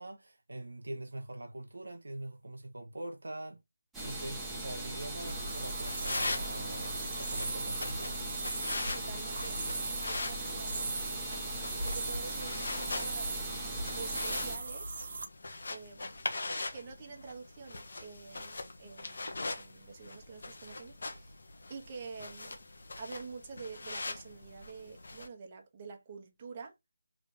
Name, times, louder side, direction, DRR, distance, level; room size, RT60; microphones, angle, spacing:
voice 1, 0.0-3.6 4.0-8.2, right 1 dB, 75° right, 0.7 m, -43 dB
sound 1, 3.9-14.6, right 1 dB, 5° right, 1.2 m, -40 dB
sound 2, 5.2-15.3, right 3 dB, 50° right, 1.3 m, -39 dB
sound 3, 5.8-25.3, left 2 dB, 60° left, 1.0 m, -42 dB
voice 2, 8.9-11.4 11.8-13.5 14.0-15.1 15.7-16.2 16.5-21.4 21.7-22.6 23.0-26.7, right 5 dB, 30° right, 1.3 m, -47 dB
4.9 x 3.5 x 2.7 m
figure-of-eight pair, 155°, 0 cm